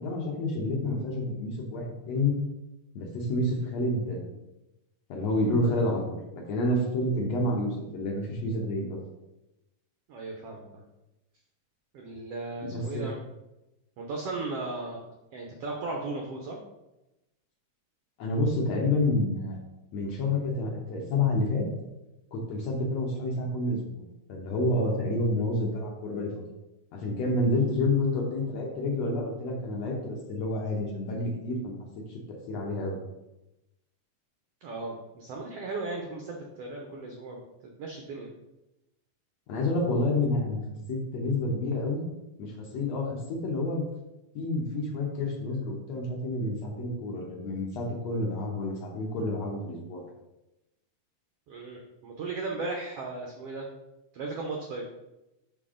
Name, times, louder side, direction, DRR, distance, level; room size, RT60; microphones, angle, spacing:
voice 1, 0.0-2.4 3.0-4.4 5.1-9.0 12.6-13.1 18.2-19.6 19.9-21.6 22.3-24.0 24.3-26.3 26.9-31.8 32.1-32.2 32.5-33.0 39.5-40.6 40.9-42.1 42.4-43.9 44.4-50.0, left 2 dB, 65° left, -1 dB, 1.9 m, -29 dB
voice 2, 10.1-10.8 11.9-13.2 14.0-15.0 15.3-16.6 34.6-37.4 37.8-38.3 51.5-53.6 54.1-54.8, right 3 dB, 85° right, 1 dB, 1.3 m, -36 dB
6.2 x 5.3 x 3.7 m, 0.95 s
omnidirectional pair, 3.8 m